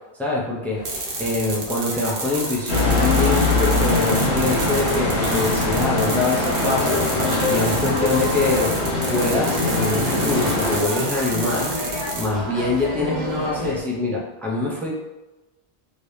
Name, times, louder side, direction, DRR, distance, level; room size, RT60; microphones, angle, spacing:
voice 1, 0.2-8.7 9.1-11.7 12.1-14.9, left 2 dB, ahead, -3 dB, 0.4 m, -24 dB
sound 1, 0.7-13.8, left 1 dB, 45° right, 1.1 m, -30 dB
sound 2, 0.8-12.3, right 3 dB, 85° right, 1.1 m, -30 dB
sound 3, 2.7-10.8, left 2 dB, 90° left, 1.1 m, -22 dB
3.2 x 3.2 x 2.7 m, 1.1 s
omnidirectional pair, 1.1 m